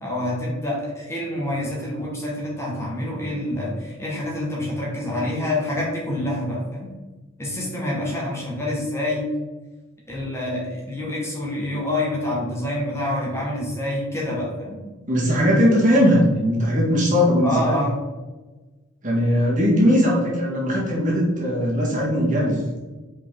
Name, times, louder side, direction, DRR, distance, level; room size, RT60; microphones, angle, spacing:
voice 1, 0.0-6.9 7.4-9.3 10.1-14.8 17.4-18.0, left 1 dB, 15° left, -4 dB, 1.6 m, -27 dB
voice 2, 15.1-17.8 19.0-22.6, equal, 40° right, -4 dB, 1.8 m, -19 dB
5.8 x 5.0 x 3.8 m, 1.2 s
head